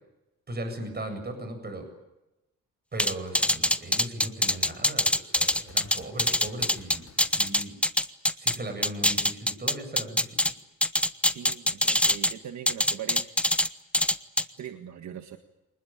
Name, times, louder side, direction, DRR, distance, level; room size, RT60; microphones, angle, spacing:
voice 1, 0.5-1.9 2.9-7.7 8.4-10.4, right 1 dB, 35° right, 7 dB, 7.8 m, -37 dB
sound 1, 3.0-8.6 8.8-10.5 10.8-12.3 12.7-13.7 13.9-14.4, left 1 dB, 5° left, 1.1 m, -23 dB
Gunshot gunfire, 5.2-8.3, left 6 dB, 55° left, 6.4 m, -53 dB
voice 2, 11.3-13.3 14.6-15.4, right 9 dB, 65° right, 6 dB, 1.7 m, -40 dB
25.5 x 20.5 x 9.1 m, 0.96 s
cardioid pair, 90°, 30 cm